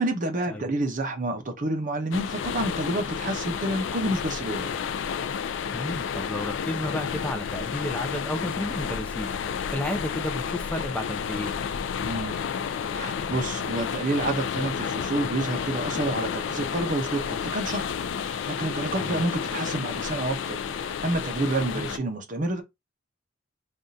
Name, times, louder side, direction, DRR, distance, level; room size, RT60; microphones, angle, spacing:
voice 1, 0.0-4.8 12.0-12.4 12.9-17.9 18.2-22.6, right 2 dB, 45° right, 0.7 m, -29 dB
sound 1, 2.1-22.0, left 7 dB, 75° left, 0.3 m, -31 dB
voice 2, 5.7-9.3 9.7-11.5 19.0-19.2 21.6-21.9, left 1 dB, 5° left, 0.5 m, -32 dB
3.5 x 2.4 x 2.6 m
head